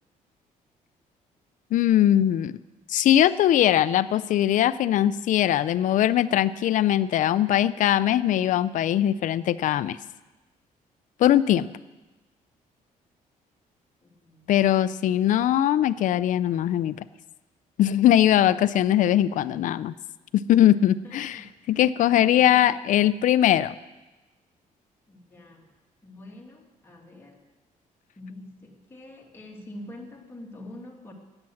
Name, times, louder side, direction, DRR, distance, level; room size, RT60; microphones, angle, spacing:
voice 1, 1.7-2.5 2.9-10.0 11.2-11.7 14.5-17.0 17.8-19.9 20.3-21.4 21.7-23.7, left 11 dB, 65° left, 16 dB, 0.5 m, -21 dB
voice 2, 14.0-14.5 20.7-22.7 25.1-27.5 28.2-31.1, left 1 dB, 15° left, -1 dB, 2.2 m, -46 dB
13.0 x 8.9 x 7.8 m, 1.1 s
cardioid pair, 140°, 14 cm